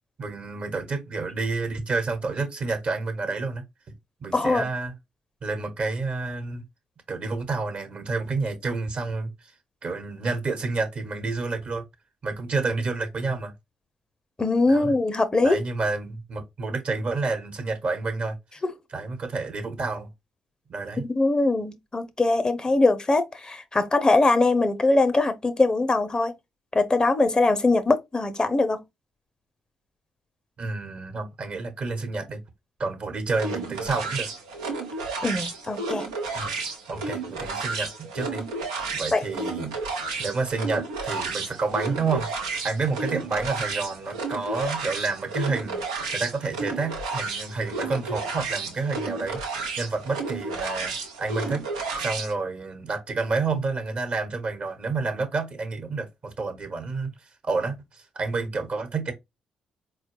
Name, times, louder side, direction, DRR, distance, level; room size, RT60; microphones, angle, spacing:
voice 1, 0.2-3.9 4.2-4.9 5.4-6.6 7.1-9.5 9.8-11.8 12.2-13.5 14.7-14.9 15.4-18.4 18.9-20.1 20.7-21.1 30.6-32.4 32.8-34.3 36.3-36.5 36.9-38.4 38.9-39.8 40.2-42.3 42.6-45.8 46.1-51.7 52.0-57.1 57.4-59.1, right 3 dB, 50° right, 1.1 m, -29 dB
voice 2, 4.3-4.7 14.4-15.6 18.6-18.7 21.0-26.3 26.7-28.8 35.2-36.1 39.1-39.2, left 2 dB, 30° left, 0.6 m, -22 dB
sound 1, 33.3-52.3, right 3 dB, 85° right, 0.6 m, -32 dB
4.3 x 2.2 x 3.0 m
hypercardioid pair, 45°, 3 cm